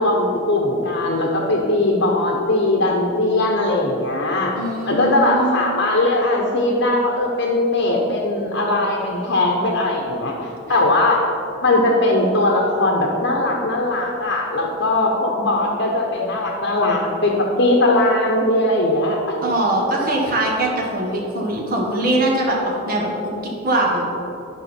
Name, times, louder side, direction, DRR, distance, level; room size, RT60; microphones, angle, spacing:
voice 1, 0.0-4.5 4.9-11.2 11.6-19.2, left 2 dB, 65° left, -1 dB, 1.1 m, -19 dB
voice 2, 4.5-5.6 19.4-24.0, right 1 dB, 50° right, -2 dB, 1.4 m, -22 dB
11.0 x 5.7 x 4.4 m, 2.8 s
head